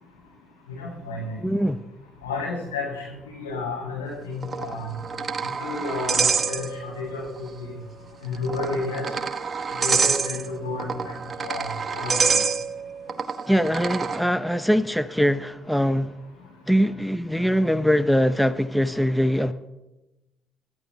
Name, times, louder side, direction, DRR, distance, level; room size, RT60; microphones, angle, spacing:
voice 1, 0.7-1.4 2.2-4.9 5.6-7.7 8.2-9.0 9.8-11.1 11.4-11.6 11.9-12.2, left 3 dB, 85° left, 7.9 m, -31 dB
voice 2, 1.4-1.8 13.5-16.1 16.7-19.5, equal, ahead, 0.8 m, -22 dB
sound 1, 4.4-7.1 7.4-7.5 8.3-14.2, right 5 dB, 40° right, 1.1 m, -27 dB
29.5 x 12.0 x 3.5 m
hypercardioid pair, 50°, 0 cm